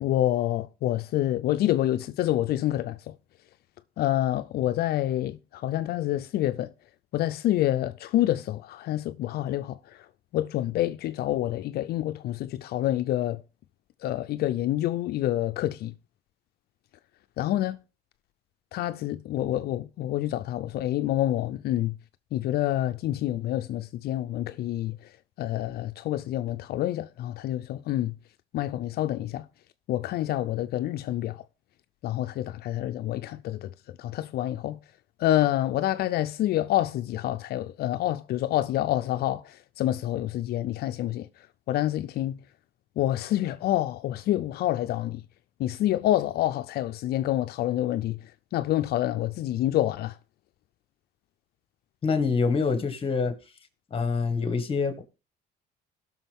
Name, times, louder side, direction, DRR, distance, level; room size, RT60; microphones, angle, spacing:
voice 1, 0.0-3.0 4.0-6.7 7.1-9.8 10.3-13.4 14.0-15.9 17.4-17.8 18.7-21.9 22.3-25.0 25.4-28.1 28.5-29.5 29.9-31.4 32.0-33.7 34.0-34.8 35.2-41.3 41.7-42.4 43.0-45.2 45.6-48.2 48.5-50.1, left 13 dB, 65° left, 0.5 m, -27 dB
voice 2, 52.0-53.3 53.9-55.0, left 5 dB, 35° left, 1.8 m, -25 dB
17.0 x 6.2 x 3.6 m
cardioid pair, 110°, 17 cm